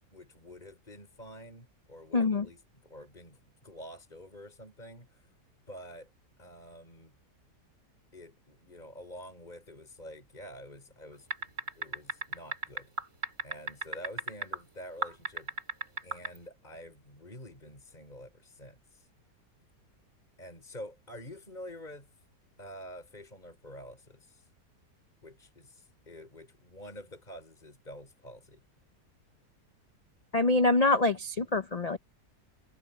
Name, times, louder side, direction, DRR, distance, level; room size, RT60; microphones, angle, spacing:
voice 1, 0.1-5.3 5.7-6.1 6.4-7.2 8.1-12.9 13.4-15.5 16.0-19.1 20.4-22.1 22.6-24.5 25.2-28.6, equal, 25° left, 5.4 m, -48 dB
voice 2, 2.1-2.5 30.3-32.0, left 2 dB, 80° left, 0.3 m, -25 dB
sound 1, 11.3-14.6 15.0-16.4, right 2 dB, 45° right, 3.9 m, -34 dB
omnidirectional pair, 1.8 m